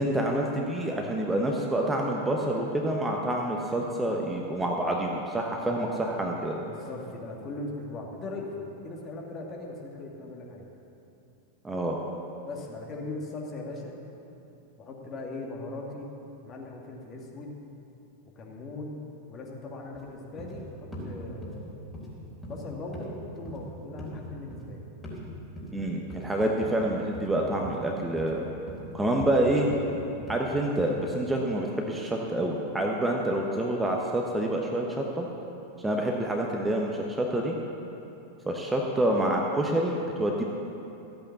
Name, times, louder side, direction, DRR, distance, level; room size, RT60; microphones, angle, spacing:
voice 1, 0.0-6.6 11.6-12.0 25.7-28.5 28.9-29.7 30.3-35.3 35.8-37.6 38.5-40.4, right 1 dB, 10° right, 0 dB, 1.1 m, -27 dB
voice 2, 6.6-10.7 12.4-14.0 14.8-16.1 16.4-17.6 18.4-19.0 19.3-21.8 22.5-24.8, left 2 dB, 30° left, -1 dB, 2.1 m, -39 dB
sound 1, 19.9-20.0 20.4-20.6 20.9-21.1 21.4-21.6 21.9-22.1 22.4-22.6 22.9-23.1 23.5-23.7 24.0-24.1 24.5-24.7 25.0-25.2 25.6-25.7 26.1-26.3 26.6-26.8 27.1-27.3 27.6-27.8 28.2-28.4 28.7-28.8 29.2-29.4 29.7-29.9 30.3-30.4 30.8-30.9, equal, 15° left, 3.5 m, -40 dB
14.0 x 8.6 x 7.1 m, 2.9 s
figure-of-eight pair, 90°, 0 cm